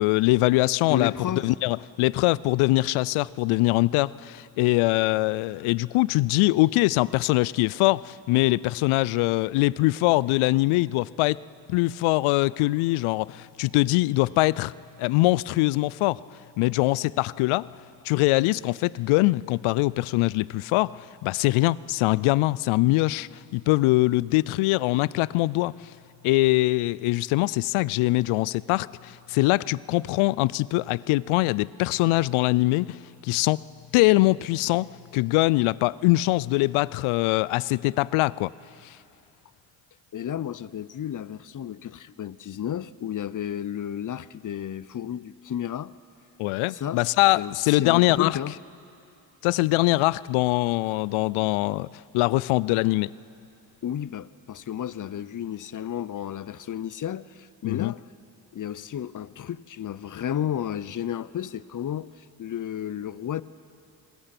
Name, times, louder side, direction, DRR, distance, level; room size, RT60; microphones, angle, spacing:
voice 1, 0.0-1.1 1.4-11.4 11.7-14.7 15.0-16.2 16.6-17.7 18.0-25.7 26.2-33.6 33.9-38.5 38.8-38.9 46.4-48.4 49.4-51.9 52.1-53.1 57.6-57.9, left 20 dB, 80° left, 0.5 m, -23 dB
voice 2, 0.8-1.5 40.1-45.9 46.7-47.1 47.3-48.6 53.8-58.0 58.5-63.4, left 10 dB, 40° left, 0.7 m, -32 dB
29.5 x 21.0 x 6.0 m
supercardioid pair, 55°, 49 cm